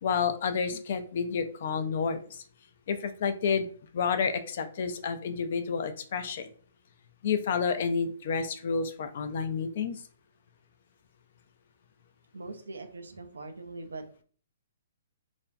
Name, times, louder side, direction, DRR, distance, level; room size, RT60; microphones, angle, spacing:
voice 1, 0.0-2.4 2.9-3.7 3.9-6.5 7.2-10.0, left 6 dB, 55° left, 9 dB, 0.3 m, -30 dB
voice 2, 12.3-14.2, right 3 dB, 85° right, 7 dB, 0.4 m, -42 dB
2.4 x 2.1 x 2.5 m, 0.44 s
hypercardioid pair, 130°, 0 cm